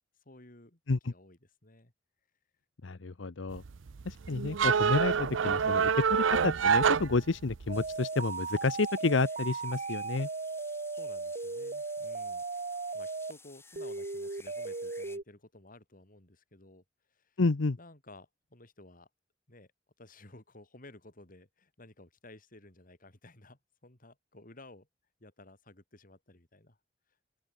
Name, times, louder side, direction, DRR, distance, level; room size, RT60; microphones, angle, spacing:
voice 1, 0.3-1.9 2.9-3.3 10.9-12.5 12.9-16.8 17.1-17.4 17.8-19.1 19.5-19.7 20.0-24.9 25.2-26.8, left 2 dB, 45° left, 3.7 m, -55 dB
voice 2, 2.8-3.6 4.0-10.3 17.4-17.8, left 3 dB, 80° left, 0.8 m, -30 dB
sound 1, 3.5-7.8, right 6 dB, 85° right, 0.6 m, -27 dB
sound 2, 7.7-15.2, left 3 dB, 15° left, 6.7 m, -55 dB
sound 3, 7.7-13.3 13.8-15.2, right 4 dB, 40° right, 1.1 m, -37 dB
open air
head